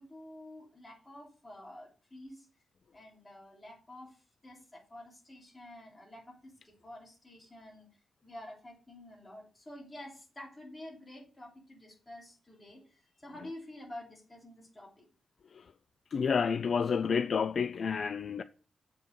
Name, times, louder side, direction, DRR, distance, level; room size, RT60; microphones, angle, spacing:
voice 1, 0.0-2.5 2.9-4.2 4.4-7.9 8.2-15.1, left 1 dB, 15° left, 3.1 m, -49 dB
voice 2, 16.1-18.4, left 6 dB, 45° left, 0.3 m, -30 dB
7.9 x 5.2 x 5.3 m
wide cardioid pair, 175°, 0 cm